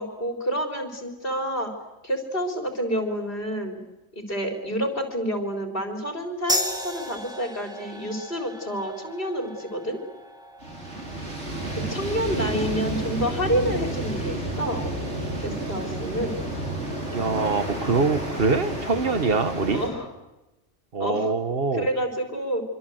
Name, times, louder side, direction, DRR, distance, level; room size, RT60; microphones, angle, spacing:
voice 1, 0.0-1.7 2.0-3.8 4.1-10.0 11.7-14.8 15.4-16.4 19.7-20.1 21.0-21.3 21.7-22.6, equal, 50° left, 4 dB, 4.3 m, -28 dB
sound 1, 6.5-13.6, equal, 5° right, 2.8 m, -35 dB
sound 2, 10.6-19.9, right 1 dB, 70° right, 5.6 m, -31 dB
voice 2, 17.1-19.8 20.9-21.9, right 4 dB, 55° right, 10 dB, 1.7 m, -24 dB
26.0 x 25.0 x 8.0 m, 1.0 s
omnidirectional pair, 1.2 m